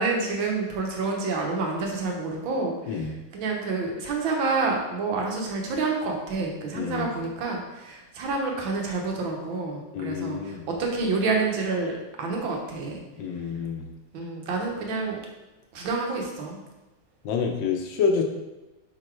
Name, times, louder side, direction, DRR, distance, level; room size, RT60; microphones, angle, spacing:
voice 1, 0.0-13.0 14.1-15.2 15.7-16.6, right 3 dB, 85° right, 1 dB, 1.8 m, -28 dB
voice 2, 6.7-7.1 9.9-10.7 13.2-13.8 17.2-18.2, left 5 dB, 75° left, 3 dB, 1.4 m, -27 dB
5.3 x 4.0 x 4.4 m, 1.1 s
omnidirectional pair, 2.1 m